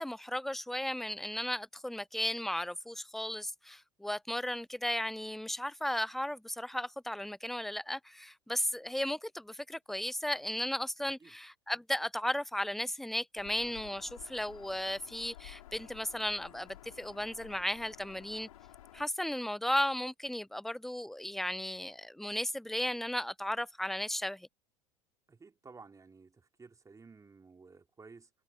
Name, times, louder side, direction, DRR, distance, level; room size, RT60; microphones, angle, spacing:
voice 1, 0.0-18.5 18.9-24.5, left 1 dB, ahead, 0.3 m, -35 dB
Bird vocalization bird call bird song, 13.3-19.1, left 13 dB, 80° left, 4.8 m, -53 dB
voice 2, 25.3-28.3, right 4 dB, 20° right, 3.4 m, -54 dB
hypercardioid pair, 90°, 18 cm